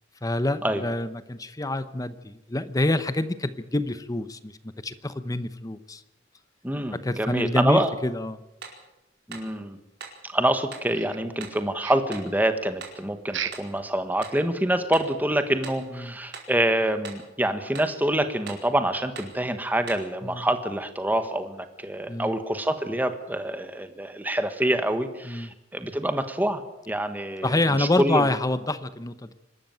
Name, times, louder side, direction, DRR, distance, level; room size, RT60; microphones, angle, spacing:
voice 1, 0.2-4.6 4.8-6.0 6.9-8.4 15.9-16.1 20.2-20.5 22.1-22.3 25.2-25.5 27.4-29.3, left 2 dB, 20° left, 12 dB, 0.8 m, -27 dB
voice 2, 6.6-7.9 9.3-9.8 10.2-28.3, right 1 dB, 10° right, 8 dB, 1.4 m, -26 dB
sound 1, 8.6-8.9 9.3-9.5 10.0-10.2 10.7-10.9 11.4-11.6 12.1-12.3 12.8-13.0 13.5-13.7 14.2-14.4 14.9-15.2 15.6-15.9 16.3-16.6 17.0-17.3 17.7-18.0 18.5-18.7 19.1-19.4 19.9-20.1, right 5 dB, 60° right, 4.8 m, -42 dB
sound 2, 10.9-11.5 11.8-12.2 13.3-13.8 14.1-14.2 14.7-14.8 15.3-15.4, right 9 dB, 75° right, 1.4 m, -35 dB
25.5 x 13.0 x 9.2 m, 0.93 s
head